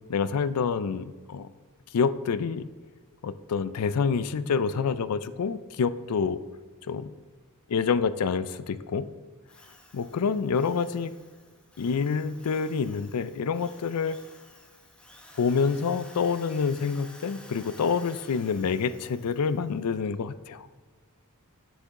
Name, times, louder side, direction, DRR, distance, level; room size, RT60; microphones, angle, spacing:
voice 1, 0.1-1.5 1.9-2.7 3.2-6.4 6.8-7.1 7.7-9.1 9.9-11.1 11.8-14.2 15.4-20.7, left 5 dB, 90° left, 14 dB, 0.4 m, -27 dB
Drill, 9.5-19.9, left 1 dB, 5° left, 0.7 m, -52 dB
9.3 x 6.7 x 3.7 m, 1.5 s
head